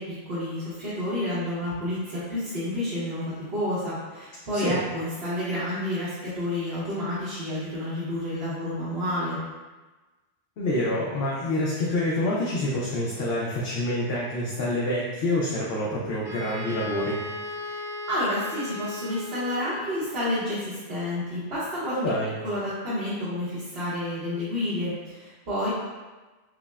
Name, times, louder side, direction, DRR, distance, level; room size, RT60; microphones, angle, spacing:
voice 1, 0.0-9.4 17.6-22.0 22.4-25.7, left 1 dB, 70° right, -11 dB, 1.2 m, -30 dB
voice 2, 10.6-17.4 21.9-22.3, left 1 dB, 70° left, -5 dB, 0.8 m, -27 dB
Wind instrument woodwind instrument, 16.2-20.3, left 1 dB, 30° right, 0.7 m, -36 dB
5.9 x 2.0 x 2.3 m, 1.2 s
omnidirectional pair, 1.1 m